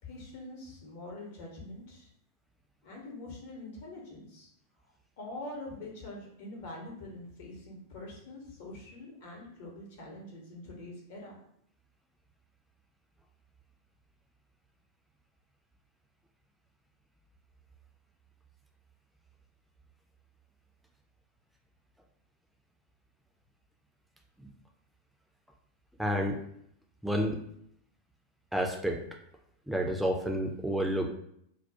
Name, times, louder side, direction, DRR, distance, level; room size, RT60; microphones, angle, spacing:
voice 1, 0.0-2.1 2.8-4.5 5.2-11.4, left 2 dB, 50° left, -1 dB, 0.8 m, -44 dB
voice 2, 26.0-26.4 27.0-27.4 28.5-29.0 29.7-31.1, equal, 5° right, 2 dB, 0.4 m, -29 dB
2.2 x 2.1 x 2.7 m, 0.72 s
figure-of-eight pair, 90°, 0 cm